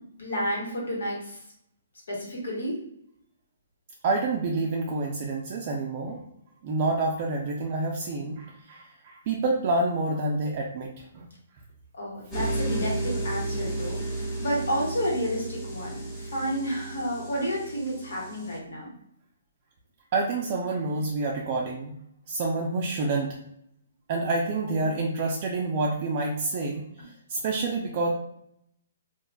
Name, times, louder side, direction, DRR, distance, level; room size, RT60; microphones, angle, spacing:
voice 1, 0.2-1.4 2.1-2.8 11.9-14.0 14.4-18.9 24.6-24.9, equal, 80° left, -3 dB, 1.3 m, -30 dB
voice 2, 4.0-6.2 6.6-11.3 20.1-22.0 22.3-23.3 24.1-28.1, right 3 dB, 40° right, -1 dB, 0.4 m, -28 dB
sound 1, 12.3-18.6, right 2 dB, 15° left, 0.9 m, -33 dB
3.0 x 2.4 x 2.2 m, 0.74 s
hypercardioid pair, 155°, 0 cm